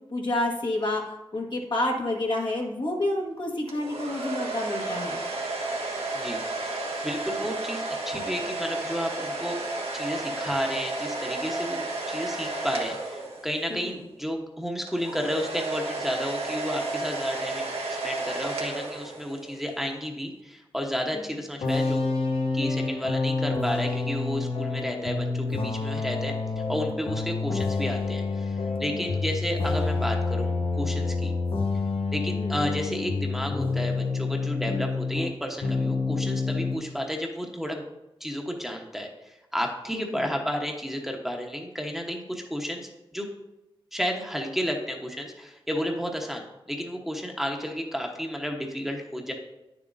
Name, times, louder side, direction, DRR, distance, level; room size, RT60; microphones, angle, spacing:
voice 1, 0.1-5.2 13.7-14.0 21.1-21.4 28.9-29.1 32.3-32.6 39.9-40.2, left 1 dB, 55° left, 0 dB, 1.5 m, -29 dB
sound 1, 3.7-13.8 14.9-19.6, right 2 dB, 80° right, 1.4 m, -32 dB
voice 2, 6.1-9.6 9.9-17.7 18.0-22.0 22.5-26.3 26.7-31.3 32.1-37.8 38.2-42.8 43.1-43.3 43.9-49.3, equal, 5° right, 1 dB, 1.1 m, -32 dB
sound 2, 21.6-35.3 35.6-36.8, left 3 dB, 85° left, 0.9 m, -28 dB
9.3 x 7.1 x 2.7 m, 0.95 s
cardioid pair, 55°, 10 cm